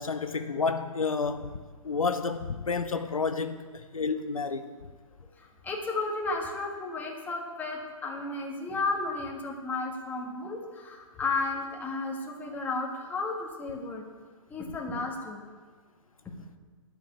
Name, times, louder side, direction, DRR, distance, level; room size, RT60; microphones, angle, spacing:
voice 1, 0.0-1.5 1.8-4.7, left 4 dB, 75° left, 0.8 m, -30 dB
voice 2, 5.6-14.0 14.5-15.4, left 3 dB, 10° left, 1.7 m, -33 dB
11.5 x 6.6 x 8.8 m
figure-of-eight pair, 120°, 18 cm